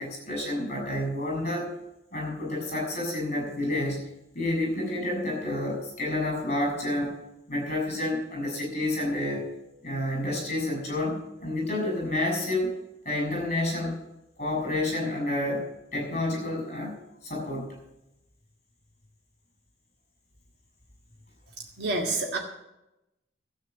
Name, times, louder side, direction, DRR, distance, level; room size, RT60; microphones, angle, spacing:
voice 1, 0.0-1.7 2.1-4.1 4.3-7.1 7.5-9.5 9.8-12.7 13.0-14.0 14.4-15.6 15.9-16.9 17.2-17.8, left 1 dB, 35° left, 1 dB, 6.1 m, -29 dB
voice 2, 21.8-22.4, right 3 dB, 55° right, 0 dB, 1.6 m, -27 dB
12.5 x 8.2 x 7.8 m, 0.92 s
head